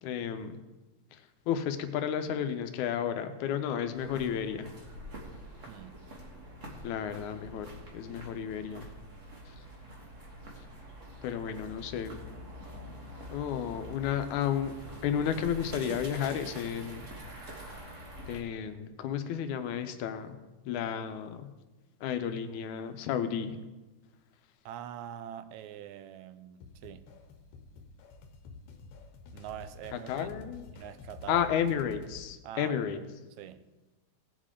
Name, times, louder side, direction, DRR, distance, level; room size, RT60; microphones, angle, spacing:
voice 1, 0.0-0.6 1.1-4.7 6.8-8.9 9.5-9.6 11.2-12.2 13.3-14.7 15.0-17.1 18.3-20.4 20.7-21.5 22.0-23.6 29.9-30.6 31.3-33.0, left 8 dB, 90° left, 2.2 m, -32 dB
sound 1, 3.9-18.4, equal, 35° right, 1.5 m, -46 dB
voice 2, 5.7-6.0 24.7-27.1 29.3-30.3 30.7-31.4 32.4-33.1 33.4-33.6, right 10 dB, 80° right, 1.9 m, -44 dB
sound 2, 26.6-32.2, left 3 dB, 75° left, 2.2 m, -50 dB
17.5 x 7.5 x 3.7 m
omnidirectional pair, 3.4 m